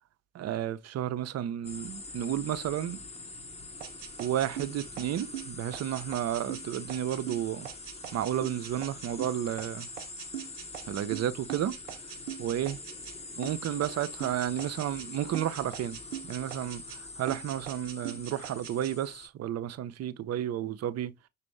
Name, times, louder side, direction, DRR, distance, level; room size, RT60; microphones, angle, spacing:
voice 1, 0.3-3.0 4.2-7.7 8.1-9.9 10.9-11.8 12.4-12.8 13.4-16.0 16.2-21.1, right 11 dB, 45° right, 0.6 m, -32 dB
sound 1, 1.6-19.3, left 3 dB, 15° left, 1.0 m, -44 dB
sound 2, 3.8-13.2 13.4-15.1 15.3-17.0 17.3-18.9, right 11 dB, 85° right, 0.5 m, -41 dB
6.0 x 2.7 x 3.2 m
figure-of-eight pair, 45°, 36 cm